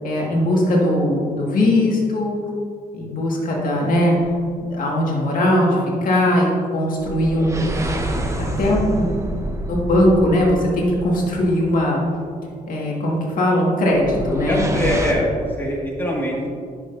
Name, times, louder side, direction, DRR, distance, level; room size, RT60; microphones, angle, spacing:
voice 1, 0.0-2.4 2.9-4.4 4.7-7.6 8.4-9.1 9.7-12.0 12.7-14.6, left 1 dB, 60° left, -2 dB, 1.8 m, -19 dB
sound 1, 4.2-4.5 7.0-11.5 13.9-15.1, right 1 dB, 20° right, 0.8 m, -27 dB
voice 2, 14.5-16.5, equal, 15° left, -3 dB, 1.9 m, -23 dB
10.0 x 6.5 x 2.6 m, 2.2 s
cardioid pair, 95°, 16 cm